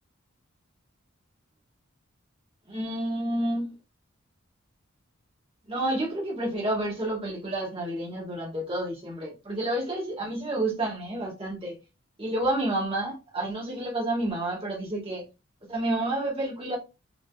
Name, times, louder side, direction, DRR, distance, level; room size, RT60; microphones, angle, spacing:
voice 1, 2.7-3.7 5.7-11.8 12.2-15.2 15.7-16.8, right 1 dB, 25° right, 1.8 m, -29 dB
5.3 x 3.2 x 2.4 m
head